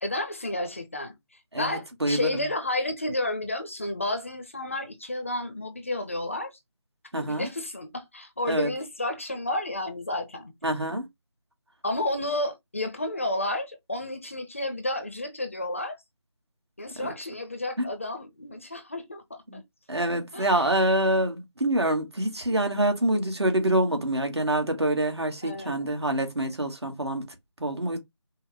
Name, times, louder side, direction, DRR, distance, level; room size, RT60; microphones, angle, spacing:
voice 1, 0.0-1.1 1.6-6.5 7.2-10.5 11.8-16.0 16.8-19.6 20.3-20.8 25.4-25.9, left 1 dB, 30° left, 0.6 m, -31 dB
voice 2, 1.5-2.4 7.1-7.5 8.5-8.7 10.6-11.1 17.0-17.1 17.8-17.9 19.5-19.6 19.9-28.0, right 1 dB, 65° right, 1.6 m, -26 dB
5.3 x 2.1 x 3.4 m
figure-of-eight pair, 160°, 15 cm